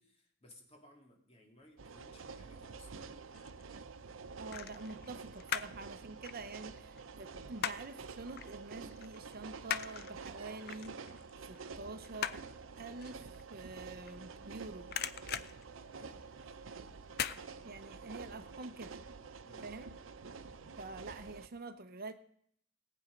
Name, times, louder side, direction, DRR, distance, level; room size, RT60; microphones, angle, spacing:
voice 1, 0.0-3.1 15.9-16.6 19.4-19.7, left 1 dB, 30° left, 0 dB, 2.6 m, -61 dB
sound 1, 1.8-21.5, right 4 dB, 90° right, 0.7 m, -49 dB
sound 2, 3.0-3.6 4.5-5.8 6.1-8.0 8.4-8.5 8.9-14.5 14.8-16.5 17.1-17.4 17.8-17.9, left 9 dB, 55° left, 0.5 m, -40 dB
voice 2, 4.4-11.0 11.5-12.4 12.8-14.9 17.6-19.0 19.6-19.9 20.8-22.1, right 3 dB, 50° right, 10 dB, 0.8 m, -47 dB
18.0 x 8.7 x 5.2 m, 0.66 s
head